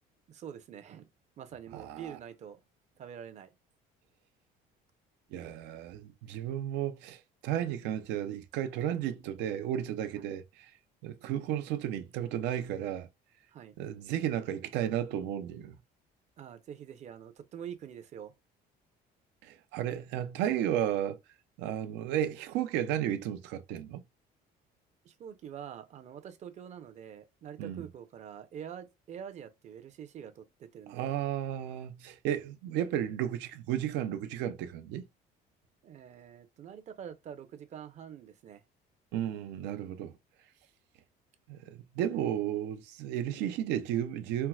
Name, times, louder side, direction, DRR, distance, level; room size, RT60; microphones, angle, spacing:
voice 1, 0.3-1.1 1.4-2.6 3.0-3.5 10.2-10.3 13.5-13.8 16.4-18.3 25.0-31.1 35.8-38.6, right 8 dB, 40° right, 0.6 m, -45 dB
voice 2, 1.7-2.2 5.3-10.7 11.0-13.1 13.8-15.8 19.4-21.2 21.6-24.0 27.6-27.9 30.9-35.0 39.1-40.1 41.5-44.5, right 11 dB, 85° right, 0.6 m, -33 dB
4.4 x 2.0 x 2.3 m
cardioid pair, 135°, 18 cm